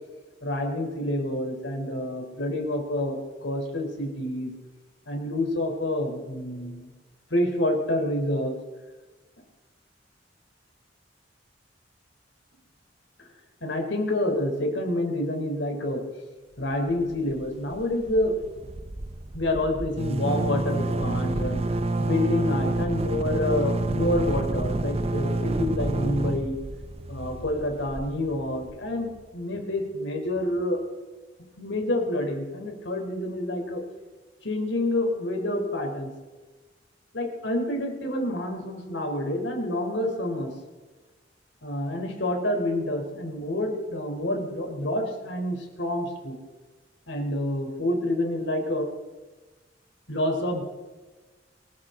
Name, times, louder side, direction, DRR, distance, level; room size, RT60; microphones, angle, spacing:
voice 1, 0.4-4.5 5.1-6.9 7.3-8.6 13.2-13.3 13.6-16.0 16.6-18.3 19.3-21.6 22.0-26.6 27.1-30.8 31.6-33.8 34.4-36.1 37.1-40.5 41.6-46.4 47.1-48.9 50.1-50.6, left 1 dB, 90° left, 3 dB, 4.0 m, -28 dB
sound 1, 16.9-17.4 17.7-17.8 18.1-28.8, right 2 dB, 35° right, 0.7 m, -28 dB
25.0 x 14.0 x 3.9 m, 1.2 s
head